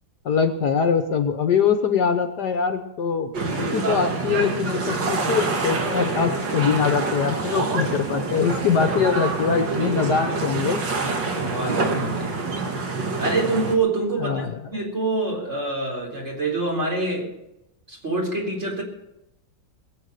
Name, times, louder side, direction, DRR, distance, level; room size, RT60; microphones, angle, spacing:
voice 1, 0.2-3.3 3.6-10.8 14.2-14.5, left 6 dB, 65° left, 7 dB, 1.5 m, -23 dB
sound 1, 3.3-13.8, right 3 dB, 70° right, 2.4 m, -26 dB
voice 2, 11.4-12.4 13.2-14.4 14.7-17.3 17.9-18.8, right 2 dB, 35° right, -1 dB, 4.2 m, -26 dB
21.0 x 8.4 x 6.7 m, 0.89 s
omnidirectional pair, 2.0 m